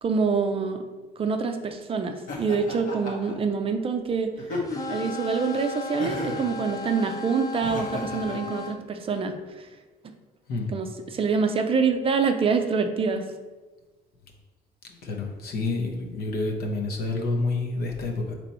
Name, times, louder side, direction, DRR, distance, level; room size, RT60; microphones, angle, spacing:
voice 1, 0.0-0.8 1.2-4.3 4.9-9.7 10.7-13.3, right 5 dB, 35° right, 6 dB, 0.4 m, -26 dB
Laughter, 2.3-3.3 4.4-5.1 6.0-6.5 7.6-8.4, left 2 dB, 50° left, 1.1 m, -33 dB
sound 1, 4.7-8.8, left 3 dB, 20° left, 0.5 m, -35 dB
voice 2, 15.0-18.3, left 3 dB, 65° left, 2 dB, 0.8 m, -28 dB
4.2 x 3.0 x 4.1 m, 1.2 s
cardioid pair, 110°, 17 cm